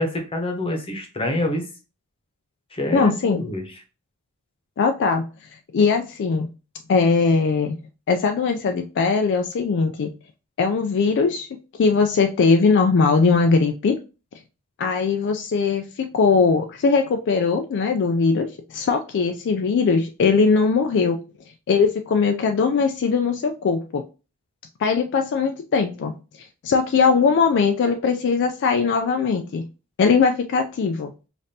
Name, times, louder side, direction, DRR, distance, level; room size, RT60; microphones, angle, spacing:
voice 1, 0.0-1.7 2.7-3.6, left 1 dB, 25° left, 4 dB, 0.8 m, -26 dB
voice 2, 2.9-3.4 4.8-5.3 5.7-6.5 6.9-7.8 8.1-10.1 10.6-11.5 11.7-14.0 14.8-21.2 21.7-24.0 24.8-26.1 26.6-29.6 30.0-31.1, left 5 dB, 55° left, 5 dB, 0.3 m, -20 dB
5.1 x 2.5 x 2.7 m, 0.33 s
head